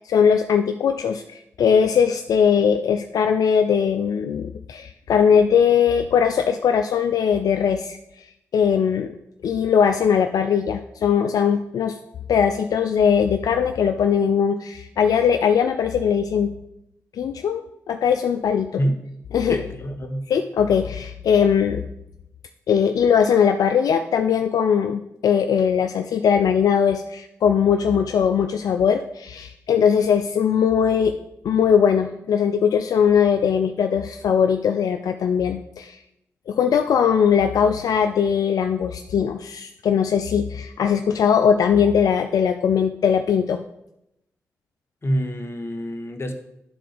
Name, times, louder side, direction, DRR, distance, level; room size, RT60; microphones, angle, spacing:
voice 1, 0.0-8.0 8.5-9.1 9.4-12.0 12.3-16.5 17.1-18.8 19.3-19.6 20.3-21.8 22.7-31.1 31.4-36.0 36.5-43.6, left 7 dB, 75° left, 6 dB, 0.4 m, -20 dB
voice 2, 19.5-20.3 45.0-46.3, equal, 40° left, 6 dB, 1.3 m, -26 dB
9.7 x 3.9 x 5.0 m, 0.82 s
supercardioid pair, 40°, 6 cm